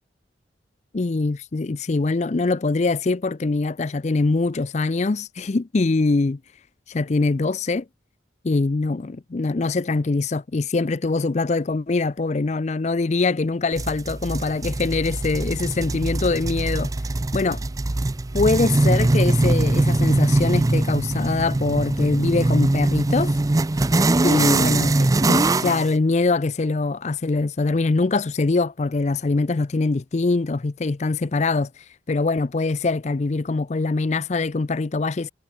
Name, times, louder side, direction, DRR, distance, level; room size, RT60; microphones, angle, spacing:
voice 1, 0.9-6.4 6.9-7.8 8.4-16.9 17.3-17.6 18.3-23.4 24.2-35.3, left 3 dB, 35° left, 0.5 m, -23 dB
sound 1, 13.8-25.9, right 2 dB, 20° right, 0.4 m, -21 dB
head